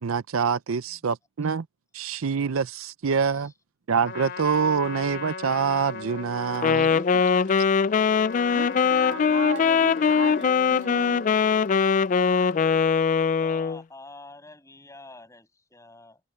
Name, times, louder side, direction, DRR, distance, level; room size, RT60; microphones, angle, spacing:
voice 1, 0.0-1.7 1.9-3.5 3.9-6.9, right 6 dB, 80° right, 0.6 m, -25 dB
Trumpet, 4.0-12.8, left 4 dB, 55° left, 2.7 m, -38 dB
Wind instrument woodwind instrument, 6.6-13.8, left 6 dB, 35° left, 0.3 m, -21 dB
voice 2, 6.6-7.5 8.5-11.4, right 3 dB, 65° right, 1.7 m, -38 dB
voice 3, 13.4-16.2, left 2 dB, 15° left, 6.9 m, -47 dB
open air
head